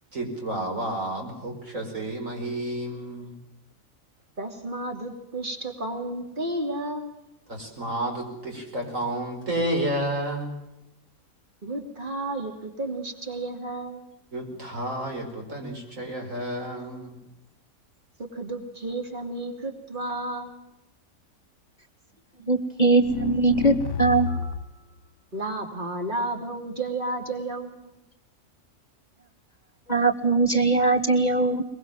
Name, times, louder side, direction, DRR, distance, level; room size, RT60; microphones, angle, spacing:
voice 1, 0.1-3.4 7.5-10.5 14.3-17.2, right 1 dB, 70° right, 2 dB, 5.5 m, -31 dB
voice 2, 4.4-7.1 11.6-14.1 18.2-20.5 25.3-27.7, right 2 dB, 35° right, 4 dB, 3.1 m, -32 dB
voice 3, 22.5-24.3 29.9-31.6, right 3 dB, 30° left, 11 dB, 1.3 m, -21 dB
sound 1, 23.0-24.8, left 6 dB, 60° left, 1.3 m, -29 dB
22.5 x 22.0 x 7.4 m, 0.91 s
omnidirectional pair, 1.4 m